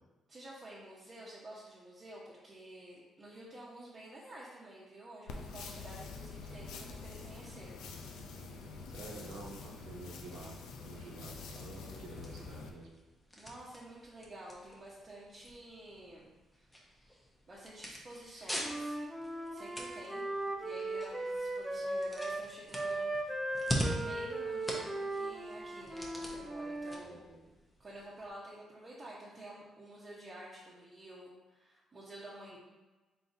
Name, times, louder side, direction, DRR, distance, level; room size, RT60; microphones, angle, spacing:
voice 1, 0.3-7.7 13.4-16.3 16.6-16.7 17.5-18.9 19.5-20.2 20.6-23.5 23.8-27.2 27.8-32.6, right 1 dB, 30° right, -7 dB, 1.0 m, -50 dB
sound 1, 5.3-12.7, left 4 dB, 85° left, 0.5 m, -46 dB
voice 2, 8.9-10.5 10.8-12.9 27.0-27.4, right 2 dB, 85° right, -2 dB, 0.9 m, -49 dB
sound 2, 11.3-28.3, equal, 10° left, 0.8 m, -44 dB
Wind instrument woodwind instrument, 18.6-22.5 22.7-27.0, right 2 dB, 10° right, 0.5 m, -38 dB
4.1 x 3.7 x 2.7 m, 1.2 s
cardioid pair, 90°, 0 cm